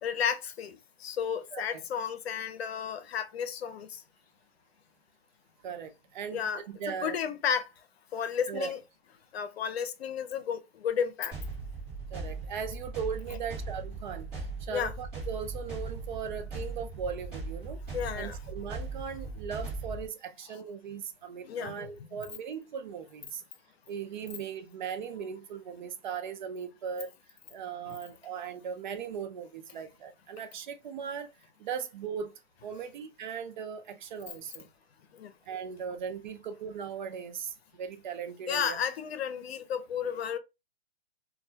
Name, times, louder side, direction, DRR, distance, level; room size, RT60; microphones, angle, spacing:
voice 1, 0.0-4.0 6.3-6.6 6.9-7.7 8.1-8.8 9.3-11.3 14.7-14.9 17.9-18.4 21.4-21.7 27.9-28.0 35.1-35.3 38.5-40.4, left 7 dB, 80° left, 0.6 m, -32 dB
voice 2, 1.5-1.8 5.6-7.2 8.5-8.7 12.1-17.8 18.1-23.4 23.9-27.1 27.5-31.3 31.6-34.7 35.5-38.8, right 7 dB, 50° right, 0.5 m, -38 dB
sound 1, 11.3-20.1, right 3 dB, 20° right, 1.3 m, -39 dB
2.3 x 2.2 x 2.6 m
hypercardioid pair, 155°, 31 cm